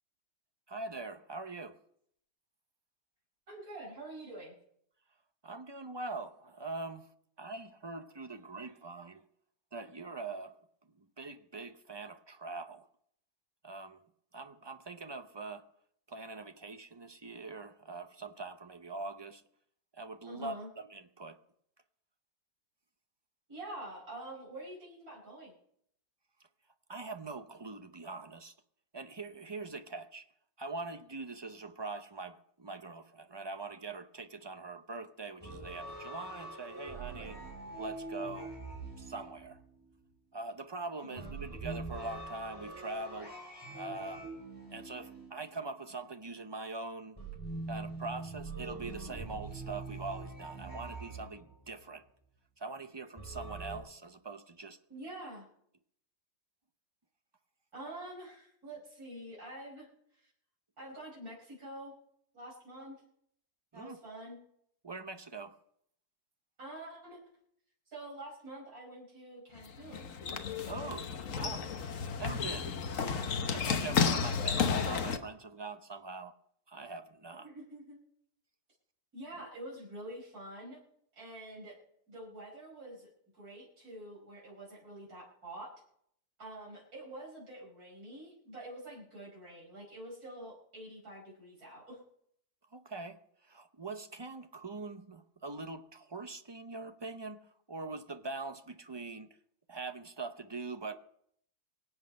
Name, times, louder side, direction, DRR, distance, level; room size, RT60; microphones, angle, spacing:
voice 1, 0.7-1.8 5.4-7.1 7.4-9.2 9.7-10.6 11.0-12.9 13.6-14.0 14.3-15.6 16.1-19.4 20.0-21.4 26.9-28.5 28.9-30.2 30.6-37.4 37.8-38.5 39.0-39.6 40.3-43.3 43.7-44.3 44.7-47.2 47.7-52.0 52.6-54.8 63.7-64.0 64.8-65.5 70.6-71.7 72.2-72.7 73.1-76.3 76.7-77.5 92.7-99.4 99.7-100.9, right 3 dB, 30° right, 0.5 m, -43 dB
voice 2, 3.5-4.5 20.3-20.7 23.5-25.5 41.0-41.3 54.9-55.5 57.7-60.3 60.8-61.9 62.3-63.0 63.7-64.4 66.6-67.2 67.9-70.1 77.4-78.0 79.1-80.8 81.1-81.8 82.1-85.7 86.4-92.0, right 1 dB, 75° right, 5.5 m, -47 dB
sound 1, 35.4-40.0 41.2-45.9 47.2-51.8 53.2-53.8, right 2 dB, 15° left, 5.0 m, -44 dB
sound 2, 69.6-75.2, left 6 dB, 60° left, 1.3 m, -32 dB
24.0 x 8.1 x 5.3 m
omnidirectional pair, 1.6 m